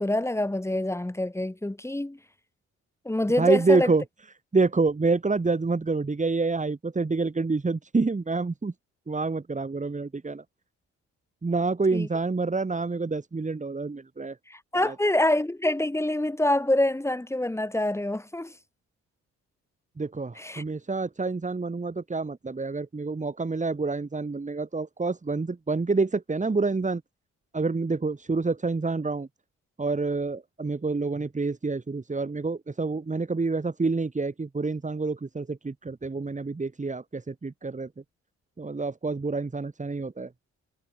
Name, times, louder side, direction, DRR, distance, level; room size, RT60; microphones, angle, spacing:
voice 1, 0.0-2.2 3.1-3.9 11.9-12.1 14.5-18.5 20.4-20.6, left 1 dB, 10° left, 3.5 m, -26 dB
voice 2, 3.4-4.0 4.5-8.7 9.1-10.4 11.4-14.4 14.7-15.0 20.0-27.0 27.5-29.3 29.8-37.9 38.6-40.3, right 3 dB, 25° right, 7.0 m, -27 dB
cardioid pair, 90°, 30 cm